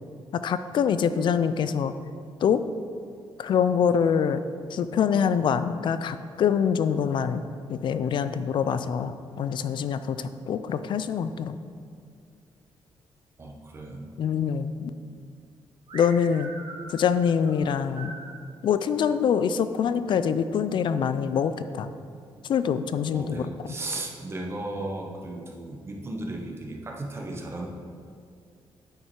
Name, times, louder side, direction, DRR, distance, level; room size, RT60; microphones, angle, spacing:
voice 1, 0.3-1.9 2.4-2.6 3.4-4.4 4.7-7.4 7.7-11.6 14.2-14.9 15.9-16.5 16.9-18.1 18.6-21.9 22.4-23.7, left 7 dB, 55° left, 11 dB, 0.4 m, -25 dB
voice 2, 13.4-14.1 23.1-27.7, right 2 dB, 25° right, 1 dB, 0.9 m, -35 dB
sound 1, 15.9-18.4, right 3 dB, 60° right, 1.2 m, -42 dB
8.7 x 5.6 x 4.6 m, 2.2 s
wide cardioid pair, 155°, 9 cm